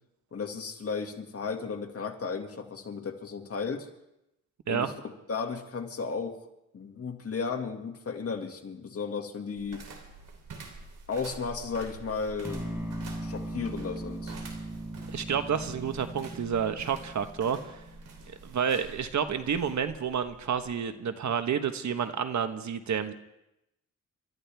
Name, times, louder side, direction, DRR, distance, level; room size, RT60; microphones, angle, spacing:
voice 1, 0.3-3.9 4.7-4.9 5.3-6.4 6.7-9.9 11.1-14.3, left 5 dB, 50° left, 3 dB, 2.2 m, -34 dB
sound 1, 9.6-20.8, right 4 dB, 85° right, 3.3 m, -48 dB
sound 2, 12.4-18.5, right 1 dB, 10° right, 4.9 m, -39 dB
voice 2, 15.1-17.8 18.3-23.1, right 7 dB, 65° right, 9 dB, 1.2 m, -30 dB
29.5 x 13.0 x 3.5 m, 0.87 s
cardioid pair, 85°, 31 cm